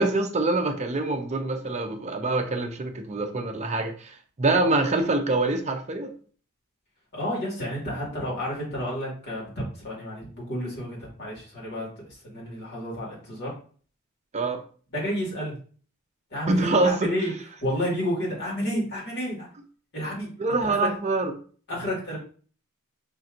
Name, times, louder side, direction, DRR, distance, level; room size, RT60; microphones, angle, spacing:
voice 1, 0.0-6.1 14.3-14.6 16.5-17.1 20.4-21.3, right 2 dB, 30° right, 5 dB, 0.6 m, -25 dB
voice 2, 7.1-11.9 12.2-13.5 14.9-15.6 16.3-17.3 17.6-19.5 19.9-20.3 20.6-20.9 21.7-22.2, equal, 50° left, -4 dB, 1.9 m, -30 dB
5.1 x 2.8 x 2.5 m, 0.42 s
head